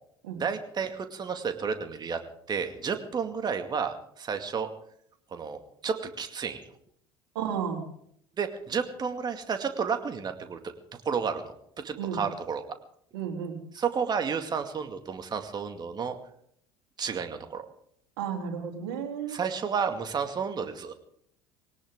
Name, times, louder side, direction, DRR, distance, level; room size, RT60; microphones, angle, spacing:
voice 1, 0.4-2.2 2.5-4.7 5.3-6.7 8.4-10.7 11.0-12.8 13.7-16.2 17.0-17.7 19.3-20.9, right 6 dB, 30° right, 6 dB, 2.2 m, -31 dB
voice 2, 7.4-7.9 12.0-12.2 13.1-13.6 18.2-19.4, right 7 dB, 70° right, 2 dB, 3.5 m, -33 dB
21.0 x 18.0 x 3.8 m, 0.67 s
hypercardioid pair, 70°, 13 cm